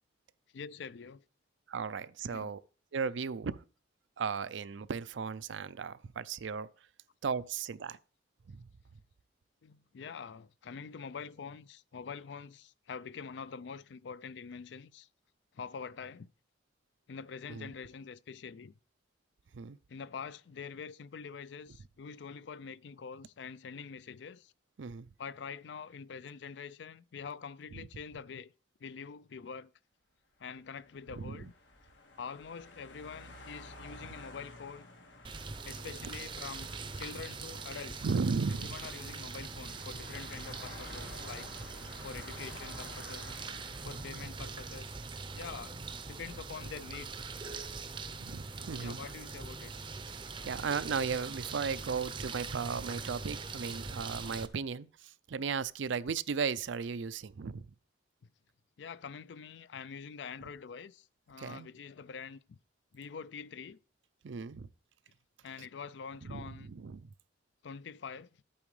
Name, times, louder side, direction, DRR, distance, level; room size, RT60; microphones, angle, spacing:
voice 1, 0.5-1.2 2.3-2.5 9.6-15.1 15.5-16.3 17.1-18.8 19.9-24.5 25.2-28.5 28.8-29.7 30.4-31.5 32.2-34.9 35.6-38.1 38.6-41.5 42.0-43.6 43.8-45.0 45.3-45.8 46.1-47.1 48.6-49.7 58.8-62.6 62.9-63.8 65.4-66.7 67.6-68.3, left 6 dB, 70° left, 0.4 m, -45 dB
voice 2, 1.7-2.6 2.9-3.6 4.2-6.7 7.2-8.0 8.5-8.6 17.5-17.7 19.5-19.8 24.8-25.1 27.7-27.9 31.2-31.4 38.0-38.7 48.2-49.0 50.4-57.7 61.4-61.7 64.2-64.7 66.3-67.1, right 5 dB, 85° right, 0.5 m, -36 dB
sound 1, 30.5-45.9, left 2 dB, 90° left, 1.7 m, -52 dB
sound 2, 35.2-54.5, right 4 dB, 25° right, 0.6 m, -42 dB
11.0 x 8.7 x 3.2 m
head